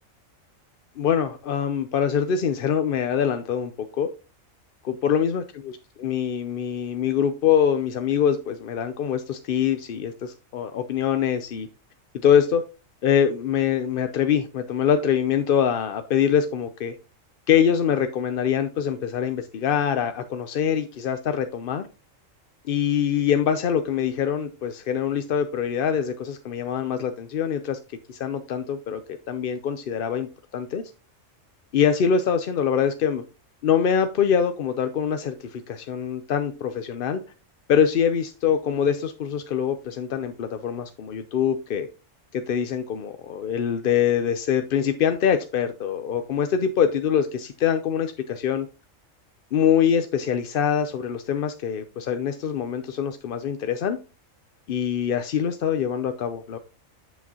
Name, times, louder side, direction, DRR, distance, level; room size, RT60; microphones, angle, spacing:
voice 1, 1.0-4.1 4.8-5.7 6.0-11.7 12.2-12.6 13.0-17.0 17.5-21.9 22.7-27.8 28.1-30.9 31.7-33.2 33.6-37.2 37.7-41.9 42.3-48.7 49.5-54.0 54.7-56.6, left 8 dB, 55° left, 9 dB, 0.6 m, -24 dB
7.9 x 7.1 x 2.8 m, 0.31 s
omnidirectional pair, 1.4 m